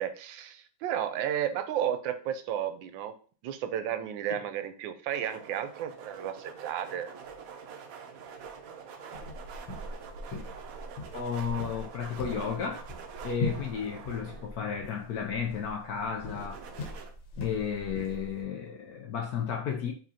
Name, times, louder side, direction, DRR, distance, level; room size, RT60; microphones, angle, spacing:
voice 1, 0.0-3.1 3.4-7.1, right 10 dB, 85° right, 1.3 m, -33 dB
sound 1, 5.1-15.0 16.2-17.1, right 6 dB, 65° right, 0.9 m, -46 dB
sound 2, 9.1-18.4, left 2 dB, 85° left, 1.7 m, -41 dB
voice 2, 11.1-12.8 13.2-16.7 17.4-19.9, left 7 dB, 70° left, 0.9 m, -33 dB
5.0 x 3.6 x 2.8 m
omnidirectional pair, 2.1 m